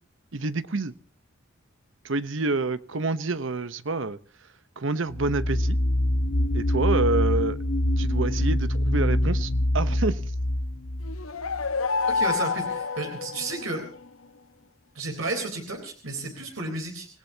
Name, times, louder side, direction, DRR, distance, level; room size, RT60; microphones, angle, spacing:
voice 1, 0.3-0.9 2.0-4.2 4.8-5.8 6.5-7.6 8.0-10.2, right 3 dB, 70° right, 14 dB, 0.9 m, -27 dB
sound 1, 5.1-11.7, left 1 dB, 60° left, 1.2 m, -25 dB
sound 2, 11.0-13.9, left 4 dB, 85° left, 0.9 m, -28 dB
voice 2, 12.1-13.8 14.9-17.1, right 2 dB, 90° right, 2 dB, 3.9 m, -32 dB
28.0 x 17.0 x 2.8 m, 0.39 s
head